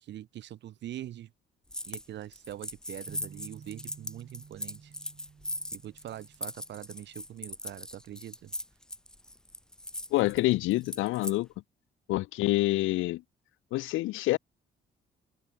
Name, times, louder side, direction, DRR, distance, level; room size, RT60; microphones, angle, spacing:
voice 1, 0.0-1.3 1.8-4.9 5.7-8.5, right 12 dB, 65° right, 0.7 m, -43 dB
sound 1, 1.7-2.1 2.3-11.4, left 1 dB, 5° left, 0.5 m, -40 dB
sound 2, 3.1-7.1, right 6 dB, 40° right, 1.9 m, -53 dB
voice 2, 10.1-11.5 12.1-13.2 13.7-14.4, left 18 dB, 90° left, 0.5 m, -27 dB
open air
cardioid pair, 90°, 20 cm